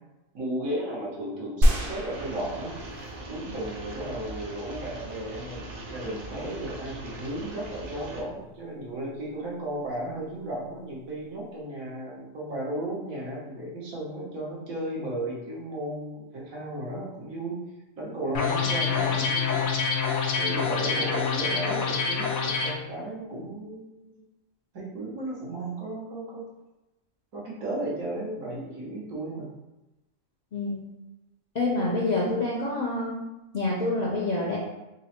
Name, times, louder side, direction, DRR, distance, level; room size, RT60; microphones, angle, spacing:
voice 1, 0.3-2.8 3.3-17.6 18.0-19.6 20.4-24.3 24.7-26.4 27.3-29.5, right 1 dB, 90° right, -5 dB, 1.5 m, -34 dB
sound 1, 1.6-3.4 3.9-4.0, equal, 55° right, 0.6 m, -25 dB
sound 2, 2.1-8.2, right 2 dB, 70° right, 1.3 m, -41 dB
sound 3, 18.3-22.7, left 5 dB, 80° left, 1.0 m, -26 dB
voice 2, 30.5-30.8 31.5-33.1 33.5-34.6, left 2 dB, 65° left, -4 dB, 0.4 m, -27 dB
3.7 x 2.1 x 4.1 m, 0.99 s
omnidirectional pair, 1.4 m